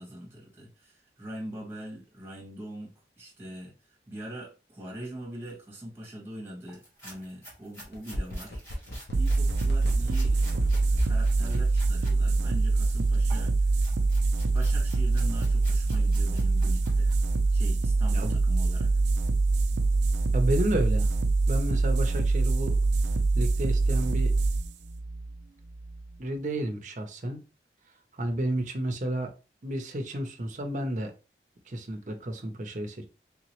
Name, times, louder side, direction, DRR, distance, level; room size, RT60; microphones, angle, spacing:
voice 1, 0.0-8.9 9.1-10.5 11.0-13.5 14.5-17.1 17.5-18.9, right 1 dB, 15° right, 1.4 m, -42 dB
sound 1, 6.7-12.2 12.5-17.5, right 1 dB, 15° left, 1.6 m, -50 dB
sound 2, 7.8-11.2 11.5-11.6, equal, 70° left, 1.0 m, -34 dB
sound 3, 9.1-26.2, right 3 dB, 85° right, 0.4 m, -25 dB
voice 2, 20.3-21.1 21.5-22.8 23.3-24.3 26.2-27.4 28.1-29.3 29.6-31.1 31.7-33.1, right 1 dB, 45° right, 0.7 m, -31 dB
3.5 x 3.0 x 3.0 m
head